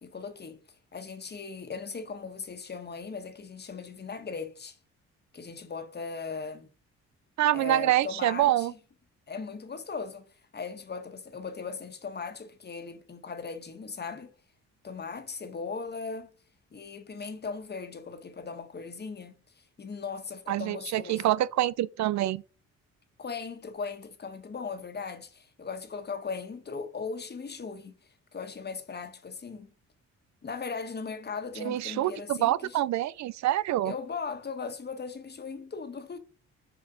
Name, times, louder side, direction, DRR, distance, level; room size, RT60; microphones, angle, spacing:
voice 1, 0.0-0.6 0.9-4.8 5.3-6.7 7.5-8.8 9.3-10.3 10.5-14.3 14.8-16.3 16.7-21.3 23.2-29.7 30.4-32.8 33.8-36.2, left 5 dB, 35° left, 1.4 m, -38 dB
voice 2, 7.4-8.7 20.5-22.4 31.6-33.9, right 14 dB, 65° right, 0.4 m, -26 dB
7.0 x 4.9 x 3.9 m
cardioid pair, 90°, 30 cm